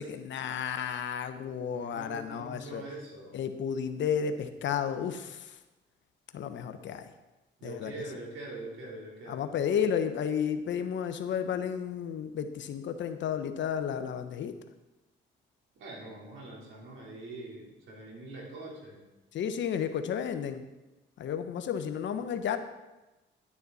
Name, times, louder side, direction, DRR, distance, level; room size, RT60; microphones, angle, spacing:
voice 1, 0.0-2.8 3.3-5.6 6.3-7.1 7.6-7.9 9.3-14.5 19.3-20.6 21.2-22.6, left 8 dB, 70° left, 9 dB, 1.0 m, -32 dB
voice 2, 1.7-3.4 7.6-9.5 15.8-19.0, right 2 dB, 75° right, -3 dB, 3.8 m, -43 dB
11.0 x 9.9 x 4.1 m, 1.0 s
cardioid pair, 90°, 20 cm